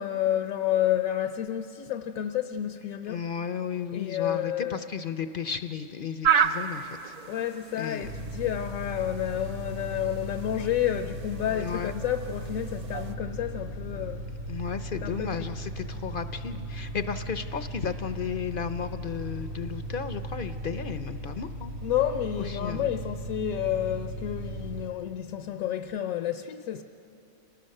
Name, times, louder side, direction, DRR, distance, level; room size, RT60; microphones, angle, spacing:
voice 1, 0.0-3.2 3.9-4.9 7.3-14.3 15.0-15.5 21.8-26.8, left 11 dB, 80° left, 8 dB, 1.1 m, -30 dB
voice 2, 3.1-7.1 7.8-8.1 11.6-11.9 14.5-21.7 22.5-22.8, left 7 dB, 55° left, 10 dB, 0.6 m, -34 dB
sound 1, 6.2-13.1, right 7 dB, 50° right, 0.4 m, -32 dB
sound 2, 8.0-24.9, right 1 dB, 85° right, 3.8 m, -37 dB
29.0 x 18.5 x 6.5 m, 2.9 s
omnidirectional pair, 1.4 m